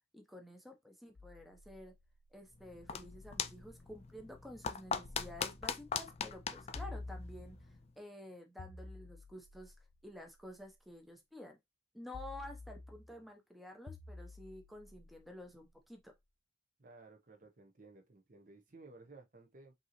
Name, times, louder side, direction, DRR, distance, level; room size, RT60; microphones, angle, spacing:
voice 1, 0.1-1.9 2.3-9.7 10.0-11.6 11.9-16.1, left 1 dB, ahead, 0.7 m, -51 dB
sound 1, 1.1-3.9 5.0-6.1 6.7-7.9 8.6-10.8 12.1-13.2 13.9-16.0, left 2 dB, 70° left, 0.7 m, -52 dB
sound 2, 2.5-7.9, left 6 dB, 35° left, 0.3 m, -41 dB
voice 2, 16.8-19.7, right 3 dB, 45° right, 0.8 m, -57 dB
5.3 x 2.8 x 2.9 m
head